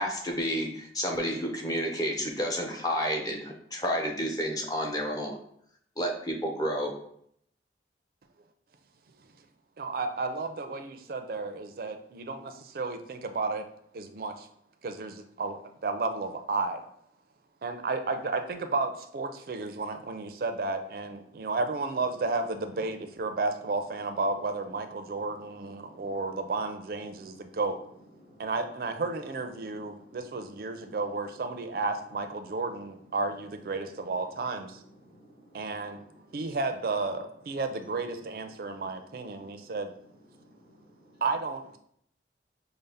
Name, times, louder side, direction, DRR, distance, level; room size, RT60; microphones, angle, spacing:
voice 1, 0.0-5.4 6.0-6.9, equal, 20° left, 1 dB, 0.6 m, -30 dB
voice 2, 9.8-13.7 13.9-14.5 14.8-16.8 17.6-27.8 28.4-34.8 35.5-36.0 36.3-39.9 41.2-41.8, right 3 dB, 55° right, 7 dB, 0.4 m, -32 dB
voice 3, 25.0-26.2 27.0-27.6 28.2-28.5 29.6-31.0 35.0-36.4 38.5-38.8 39.3-39.8 40.3-41.2, equal, 90° left, -6 dB, 0.8 m, -57 dB
5.2 x 2.0 x 3.4 m, 0.67 s
head